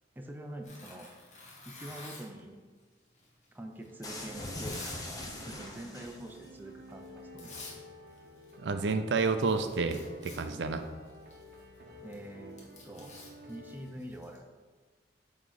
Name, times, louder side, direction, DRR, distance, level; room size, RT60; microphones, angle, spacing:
voice 1, 0.2-1.1 1.7-2.6 3.5-7.9 12.0-13.1 13.5-14.5, right 1 dB, 10° right, 3 dB, 0.5 m, -45 dB
Tearing, 0.6-2.4 3.2-5.0 5.4-5.7 6.1-6.3 7.0-7.1 7.4-7.8 8.1-8.6 8.8-8.9 9.2-14.4, left 3 dB, 40° left, 1.1 m, -50 dB
sound 1, 4.0-6.5, left 1 dB, 20° left, 0.8 m, -41 dB
sound 2, 5.3-14.0, equal, 60° right, 0.8 m, -51 dB
voice 2, 8.6-10.9, right 4 dB, 85° right, 8 dB, 0.5 m, -30 dB
8.3 x 3.1 x 3.9 m, 1.4 s
head